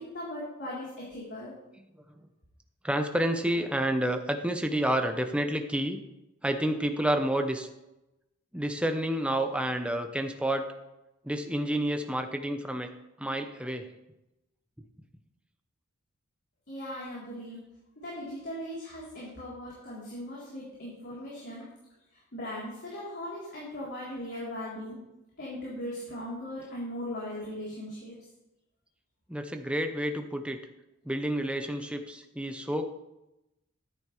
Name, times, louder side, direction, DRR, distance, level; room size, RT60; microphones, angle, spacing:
voice 1, 0.0-1.5 16.7-17.6 18.0-21.6 22.1-25.0 25.4-28.2, left 1 dB, 55° left, -7 dB, 3.7 m, -39 dB
voice 2, 2.8-6.0 6.4-7.7 8.5-10.7 11.2-12.9 13.2-13.9 29.3-30.6 31.0-33.0, right 1 dB, 5° right, 6 dB, 0.9 m, -29 dB
13.0 x 10.5 x 3.3 m, 0.91 s
head